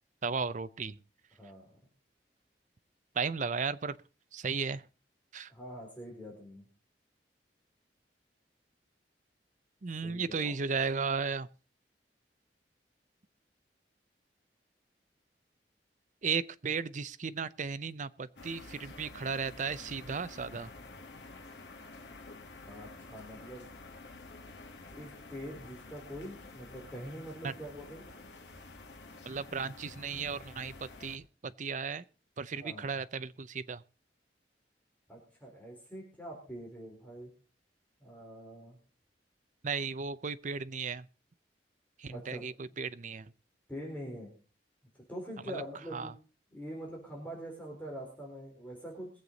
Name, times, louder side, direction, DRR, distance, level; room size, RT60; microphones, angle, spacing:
voice 1, 0.2-1.0 3.1-4.0 4.3-4.8 5.3-5.5 9.8-11.5 16.2-20.7 27.4-27.5 29.2-32.0 32.4-33.8 39.6-41.1 42.0-43.3 45.5-45.6 45.9-46.1, right 5 dB, 45° right, 0.6 m, -35 dB
voice 2, 1.4-1.8 5.5-6.6 10.0-10.6 22.7-23.7 24.9-28.0 32.5-32.9 35.1-37.3 38.0-38.8 42.1-42.8 43.7-44.3 45.1-46.1 46.5-49.1, equal, 10° left, 4.1 m, -44 dB
sound 1, 18.4-31.2, left 3 dB, 85° left, 2.0 m, -50 dB
22.0 x 8.1 x 4.0 m
head